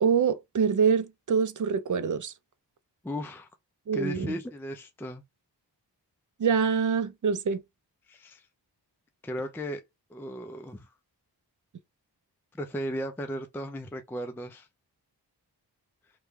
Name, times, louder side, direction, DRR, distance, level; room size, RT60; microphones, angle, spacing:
voice 1, 0.0-2.3 3.9-4.3 6.4-7.6, right 6 dB, 45° right, 0.5 m, -25 dB
voice 2, 3.0-3.5 3.9-5.2 8.1-8.5 9.2-9.8 10.1-10.9 12.5-14.7, equal, 5° left, 0.4 m, -36 dB
3.2 x 2.3 x 3.1 m
cardioid pair, 55°, 42 cm